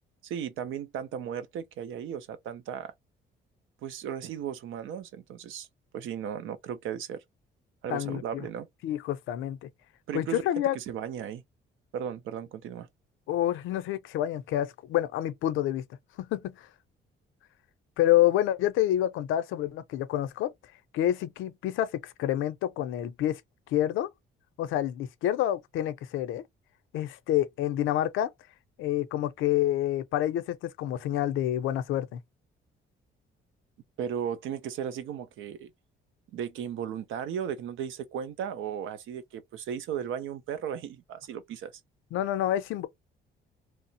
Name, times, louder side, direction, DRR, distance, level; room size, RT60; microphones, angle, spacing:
voice 1, 0.2-2.9 3.8-5.7 5.9-7.2 7.8-8.7 10.1-10.4 10.7-11.4 11.9-12.9 34.0-35.7 36.3-41.7, right 8 dB, 85° right, 0.6 m, -35 dB
voice 2, 7.9-8.4 8.8-9.7 10.1-10.8 13.3-15.8 16.2-16.7 18.0-20.5 20.9-23.4 23.7-24.1 24.6-26.4 26.9-28.3 28.8-32.2 42.1-42.9, left 12 dB, 90° left, 0.5 m, -28 dB
3.0 x 2.0 x 2.7 m
cardioid pair, 90°, 20 cm